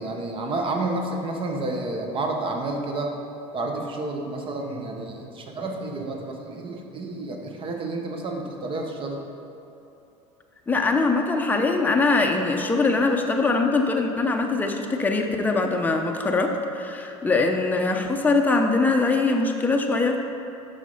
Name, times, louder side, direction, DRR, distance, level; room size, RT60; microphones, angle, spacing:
voice 1, 0.0-3.2 3.5-9.2, right 2 dB, 35° right, 2 dB, 1.1 m, -30 dB
voice 2, 10.7-20.2, left 3 dB, 10° left, 2 dB, 0.7 m, -22 dB
6.1 x 5.7 x 5.4 m, 2.9 s
supercardioid pair, 105°, 16 cm